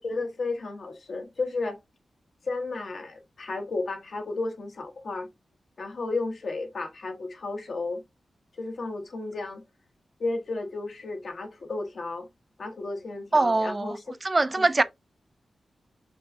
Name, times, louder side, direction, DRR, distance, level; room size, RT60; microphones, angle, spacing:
voice 1, 0.0-1.8 2.4-5.3 5.8-8.0 8.6-9.6 10.2-12.3 12.6-14.0, left 3 dB, 65° left, 1.1 m, -33 dB
voice 2, 13.3-14.8, right 2 dB, 35° right, 0.4 m, -23 dB
5.2 x 3.2 x 2.6 m
cardioid pair, 55°, 0 cm